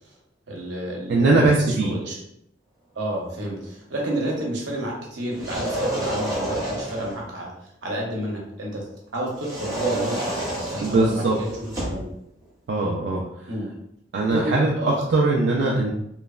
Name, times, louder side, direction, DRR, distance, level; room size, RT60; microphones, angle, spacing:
voice 1, 0.5-2.2 2.9-7.5 7.8-8.8 9.1-11.5 11.8-12.1 13.5-13.7 14.3-15.0, right 1 dB, 85° right, -2 dB, 0.8 m, -30 dB
voice 2, 1.1-1.9 10.8-11.4 12.7-13.2 14.1-15.9, right 2 dB, 65° right, -3 dB, 0.3 m, -20 dB
sound 1, 5.3-7.2 9.4-12.1, right 1 dB, 20° right, 0.8 m, -29 dB
3.0 x 2.0 x 2.3 m, 0.77 s
head